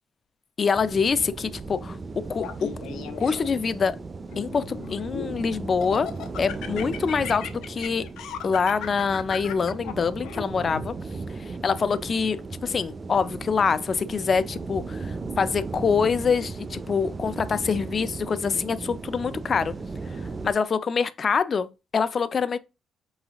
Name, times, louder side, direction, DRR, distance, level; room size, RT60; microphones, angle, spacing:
voice 1, 0.6-2.7 3.2-4.0 4.4-6.1 6.4-8.1 8.4-10.9 11.6-19.7 20.4-22.6, left 5 dB, 45° left, 0.4 m, -25 dB
sound 1, 0.7-20.5, right 3 dB, 30° right, 0.4 m, -36 dB
Laughter, 2.4-3.7 4.3-5.4 5.8-10.8, left 8 dB, 90° left, 0.7 m, -37 dB
4.6 x 4.0 x 2.9 m
cardioid pair, 90°, 0 cm